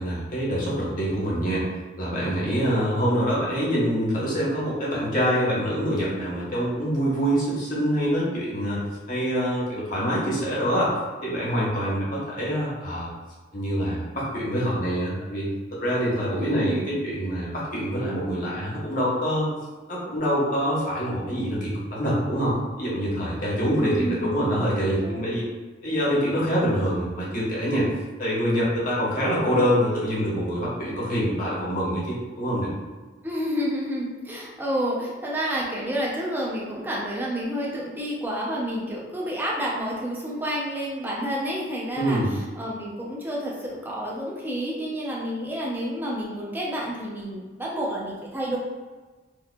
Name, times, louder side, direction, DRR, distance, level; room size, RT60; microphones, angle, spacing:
voice 1, 0.0-1.7 2.0-10.9 11.2-13.1 13.5-15.5 15.8-19.5 19.9-25.4 25.8-27.9 28.2-32.7 41.9-42.3, equal, 45° left, -6 dB, 1.1 m, -25 dB
voice 2, 16.3-16.8 23.8-24.4 24.8-25.3 33.2-48.6, equal, 10° right, -5 dB, 0.7 m, -29 dB
4.6 x 2.4 x 2.3 m, 1.3 s
head